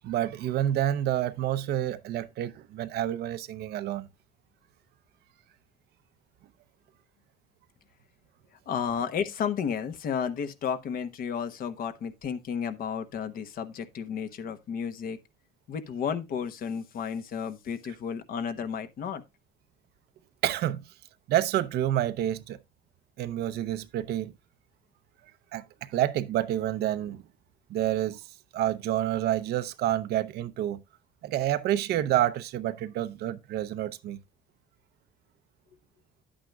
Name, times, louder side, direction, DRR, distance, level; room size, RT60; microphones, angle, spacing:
voice 1, 0.0-4.1 20.4-20.8 21.3-22.6 23.2-24.3 25.5-27.2 27.7-28.3 28.5-30.8 31.2-34.2, right 12 dB, 70° right, 0.7 m, -28 dB
voice 2, 8.7-15.2 15.7-19.2, left 7 dB, 60° left, 1.1 m, -32 dB
10.5 x 8.7 x 2.3 m
cardioid pair, 110°, 17 cm